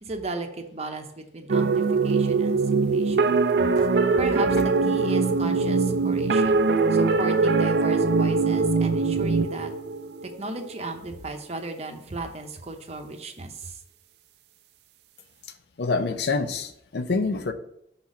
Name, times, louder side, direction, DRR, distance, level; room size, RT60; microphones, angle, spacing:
voice 1, 0.0-1.1 1.3-3.4 4.2-4.6 4.8-9.7 10.2-13.8, right 2 dB, 35° right, 5 dB, 0.8 m, -35 dB
sound 1, 1.5-10.7, right 4 dB, 60° right, 0.4 m, -22 dB
voice 2, 15.8-17.5, left 3 dB, 65° left, 9 dB, 0.5 m, -26 dB
5.7 x 4.1 x 6.2 m, 0.76 s
head